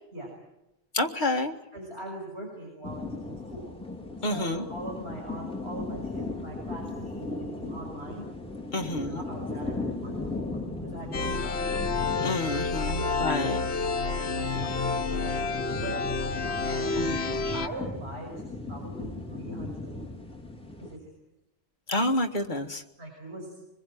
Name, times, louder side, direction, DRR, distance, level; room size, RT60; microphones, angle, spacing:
voice 1, 0.9-1.6 4.2-4.6 8.7-9.2 12.2-13.6 17.0-17.5 21.9-22.8, left 2 dB, 45° left, 3 dB, 1.9 m, -29 dB
voice 2, 1.7-3.7 4.2-8.2 8.7-11.7 12.8-16.0 16.6-17.0 17.5-20.0 20.8-21.1 23.0-23.6, right 1 dB, 70° right, -2 dB, 6.5 m, -42 dB
sound 1, 2.8-21.0, left 2 dB, 5° left, 4.1 m, -38 dB
sound 2, 11.1-17.7, left 4 dB, 75° left, 1.7 m, -29 dB
25.5 x 21.5 x 9.2 m, 0.91 s
omnidirectional pair, 1.1 m